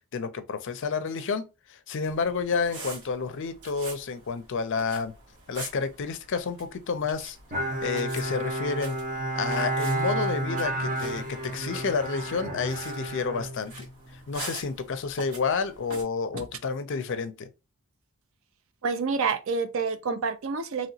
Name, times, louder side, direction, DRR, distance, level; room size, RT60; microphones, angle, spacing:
voice 1, 0.1-1.4 1.7-5.1 5.5-7.4 7.8-9.0 9.4-13.9 14.3-17.5, left 5 dB, 55° left, 0.4 m, -30 dB
sound 1, 2.1-16.0, right 3 dB, 85° right, 1.4 m, -45 dB
Bowed string instrument, 7.5-14.2, right 1 dB, 35° right, 0.8 m, -31 dB
voice 2, 18.8-20.9, right 5 dB, 65° right, 0.4 m, -28 dB
3.0 x 2.9 x 2.7 m
head